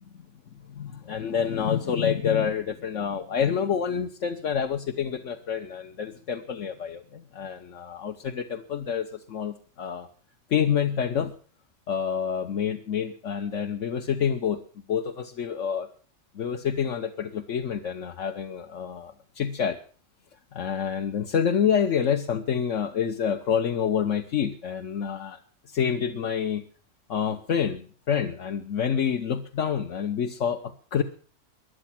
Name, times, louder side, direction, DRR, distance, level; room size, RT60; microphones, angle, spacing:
voice 1, 0.7-10.1 10.5-11.3 11.9-14.6 14.9-15.9 16.3-19.8 20.5-25.4 25.7-26.6 27.1-31.0, left 7 dB, 75° left, 5 dB, 1.4 m, -27 dB
21.0 x 11.5 x 5.9 m, 0.42 s
omnidirectional pair, 1.3 m